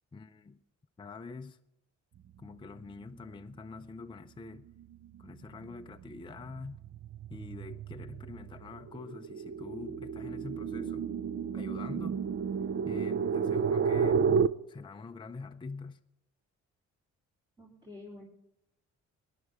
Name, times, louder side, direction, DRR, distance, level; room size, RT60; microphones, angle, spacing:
voice 1, 0.1-0.6 1.0-1.6 2.4-4.7 5.2-6.8 7.3-11.1 11.5-12.2 12.8-14.3 14.7-16.0, left 3 dB, 15° left, 0.5 m, -45 dB
sound 1, 4.8-5.2 5.6-14.5, right 6 dB, 40° right, 0.5 m, -32 dB
voice 2, 17.6-18.2, left 2 dB, 15° right, 3.0 m, -48 dB
19.0 x 10.5 x 3.5 m
cardioid pair, 90°, 30 cm